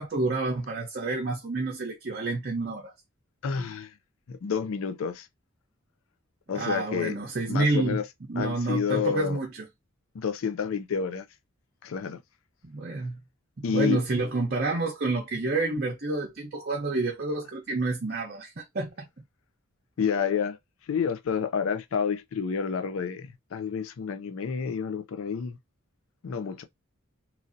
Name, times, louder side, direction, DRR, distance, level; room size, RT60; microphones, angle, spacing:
voice 1, 0.0-2.9 6.5-8.0 8.3-9.7 12.6-13.2 13.6-19.1, right 3 dB, 50° right, 0.7 m, -29 dB
voice 2, 3.4-3.9 4.3-5.3 6.5-7.1 7.5-8.1 8.4-9.4 10.1-11.3 11.8-12.2 13.6-14.0 20.0-20.6 20.9-25.6 26.2-26.6, left 6 dB, 80° left, 0.4 m, -29 dB
3.0 x 2.6 x 2.5 m
head